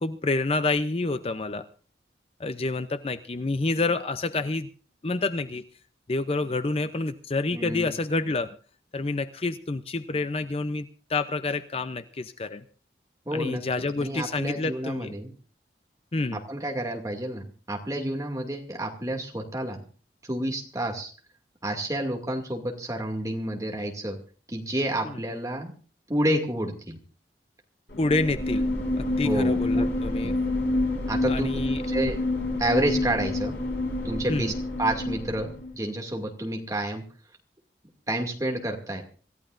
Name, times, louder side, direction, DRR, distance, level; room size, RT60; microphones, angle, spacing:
voice 1, 0.0-1.7 2.4-4.7 5.0-5.6 6.1-8.6 8.9-12.6 13.3-15.1 16.1-16.4 25.0-25.1 28.0-28.7 29.0-30.3 31.3-31.8 34.3-34.5, left 3 dB, 35° left, 11 dB, 0.6 m, -28 dB
voice 2, 7.5-7.9 13.3-13.6 14.0-15.3 16.3-19.8 20.3-21.1 21.6-24.2 24.5-25.7 26.1-27.0 28.9-29.8 30.2-30.3 31.1-31.6 31.9-32.2 32.6-33.6 34.0-34.5 34.8-37.0 38.1-39.0, right 1 dB, 20° right, 2 dB, 2.3 m, -29 dB
sound 1, 27.9-35.7, left 2 dB, 80° left, 4.4 m, -28 dB
26.0 x 14.5 x 2.5 m, 0.39 s
head